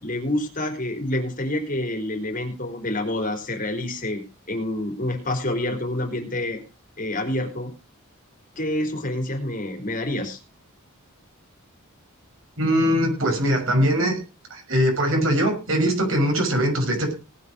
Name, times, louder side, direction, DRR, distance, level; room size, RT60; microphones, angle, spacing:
voice 1, 0.0-4.2 4.5-6.6 7.0-7.7 8.6-10.4, left 1 dB, 40° left, 4 dB, 3.8 m, -27 dB
voice 2, 12.6-14.2 14.5-17.1, equal, 65° right, 3 dB, 6.1 m, -21 dB
19.0 x 8.4 x 4.9 m, 0.31 s
head